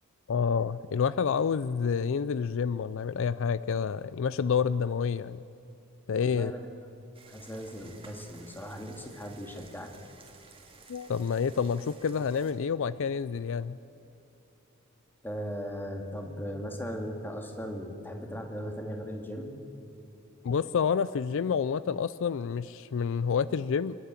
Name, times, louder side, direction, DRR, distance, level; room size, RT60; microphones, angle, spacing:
voice 1, 0.3-5.4 6.1-6.5 10.9-13.8 20.4-24.0, left 6 dB, 65° left, 16 dB, 0.4 m, -28 dB
voice 2, 6.2-6.6 7.3-10.0 15.2-19.6, equal, 10° left, 3 dB, 2.2 m, -38 dB
sound 1, 7.1-12.5, right 4 dB, 25° right, 2.3 m, -54 dB
27.0 x 12.0 x 8.9 m, 2.8 s
head